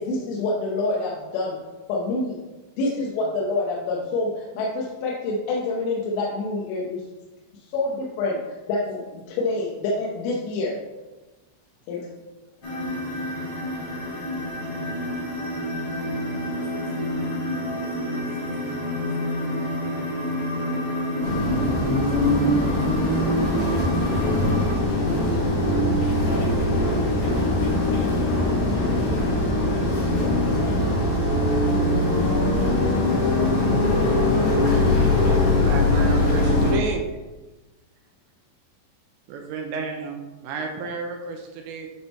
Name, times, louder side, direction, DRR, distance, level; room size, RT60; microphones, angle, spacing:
voice 1, 0.0-1.6 1.9-2.4 2.8-7.0 7.6-10.8 11.9-12.1, left 2 dB, 90° left, -3 dB, 3.3 m, -27 dB
sound 1, 12.6-24.8, left 1 dB, 50° left, 1.8 m, -29 dB
voice 2, 13.6-14.0 14.3-14.8 16.0-18.2 18.8-19.4 19.6-20.9 21.6-22.8 39.3-39.4, right 2 dB, 60° right, -7 dB, 1.7 m, -52 dB
sound 2, 21.2-36.7, left 1 dB, 70° left, 1.3 m, -21 dB
voice 3, 35.6-37.1 39.3-41.9, right 4 dB, 85° right, 2 dB, 2.9 m, -32 dB
10.0 x 4.0 x 3.5 m, 1.2 s
omnidirectional pair, 5.4 m